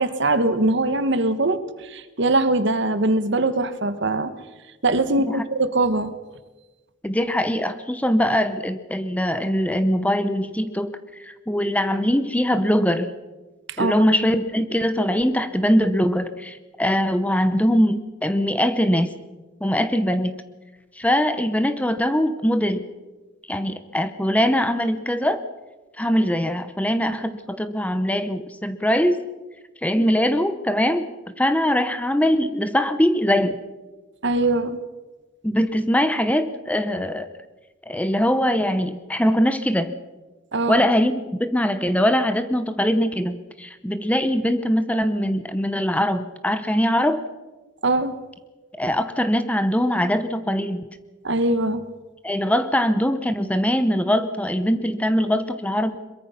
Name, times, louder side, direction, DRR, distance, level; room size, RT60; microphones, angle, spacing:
voice 1, 0.0-4.3 4.8-6.1 13.7-13.9 34.2-34.8 40.5-40.8 47.8-48.1 51.2-51.8, right 2 dB, 60° right, 12 dB, 1.4 m, -22 dB
voice 2, 7.0-13.1 13.8-19.2 19.6-20.4 21.0-22.9 23.5-25.4 26.0-29.2 29.8-33.6 35.4-37.3 37.9-39.9 40.7-47.2 48.8-50.8 52.2-56.0, equal, 5° left, 10 dB, 0.8 m, -22 dB
22.5 x 22.5 x 5.8 m, 1.2 s
head